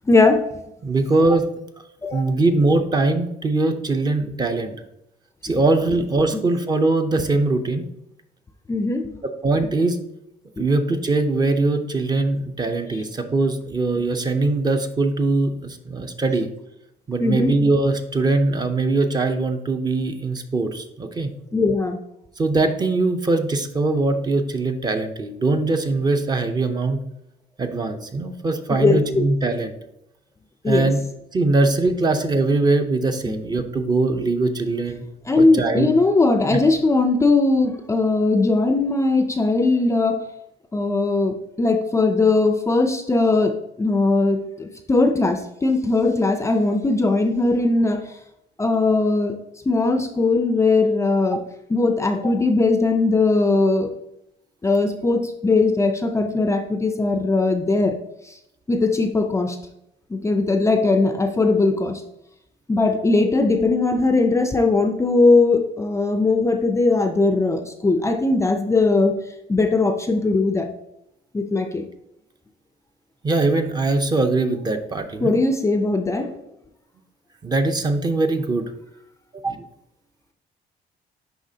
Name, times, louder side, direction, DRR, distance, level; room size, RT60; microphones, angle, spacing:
voice 1, 0.1-0.4 2.0-2.2 5.5-5.6 8.7-9.2 9.6-9.7 10.6-10.7 17.2-17.5 21.5-22.0 28.7-29.3 30.6-30.9 33.3-33.4 35.3-40.2 40.7-48.0 48.6-49.4 49.7-51.4 51.7-53.9 54.6-58.0 58.3-58.4 58.7-59.6 60.1-62.0 62.7-69.1 69.5-70.7 71.3-71.8 75.2-76.4, left 3 dB, 15° left, 7 dB, 0.4 m, -19 dB
voice 2, 0.8-1.5 2.1-4.8 5.4-7.9 9.4-10.0 10.6-16.5 17.1-21.3 22.4-27.0 27.6-29.7 30.7-31.0 31.3-35.0 35.4-35.9 36.5-36.6 51.3-51.4 73.2-75.3 77.4-78.7 79.4-79.6, right 2 dB, 25° right, 7 dB, 0.6 m, -21 dB
10.0 x 3.4 x 2.8 m, 0.82 s
cardioid pair, 110°, 17 cm